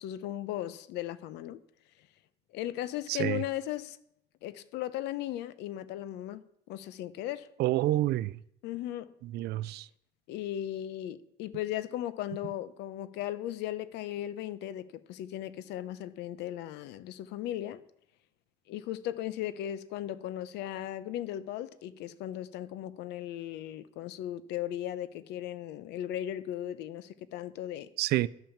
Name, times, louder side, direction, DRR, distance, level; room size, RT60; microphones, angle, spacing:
voice 1, 0.0-1.6 2.5-4.0 4.4-7.5 8.6-9.2 10.3-17.8 18.7-27.9, left 12 dB, 90° left, 0.9 m, -37 dB
voice 2, 3.1-3.4 7.6-8.4 9.2-9.9 28.0-28.3, right 16 dB, 75° right, 0.5 m, -28 dB
12.0 x 9.0 x 7.2 m
cardioid pair, 110°, 17 cm